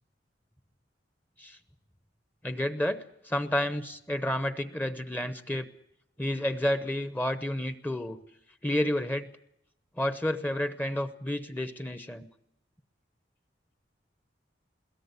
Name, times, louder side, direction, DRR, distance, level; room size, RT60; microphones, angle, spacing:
voice 1, 2.4-5.7 6.2-8.2 8.6-9.3 10.0-12.3, left 1 dB, 10° left, 10 dB, 0.8 m, -30 dB
22.0 x 17.5 x 8.2 m, 0.77 s
head